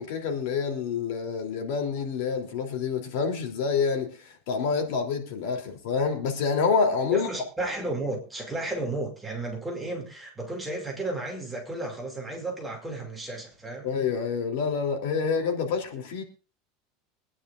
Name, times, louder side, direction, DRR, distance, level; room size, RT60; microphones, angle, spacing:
voice 1, 0.0-7.3 13.8-16.2, left 5 dB, 60° left, 3.2 m, -27 dB
voice 2, 7.1-13.9, right 2 dB, 5° right, 2.6 m, -33 dB
24.5 x 9.9 x 2.5 m
supercardioid pair, 175°, 0 cm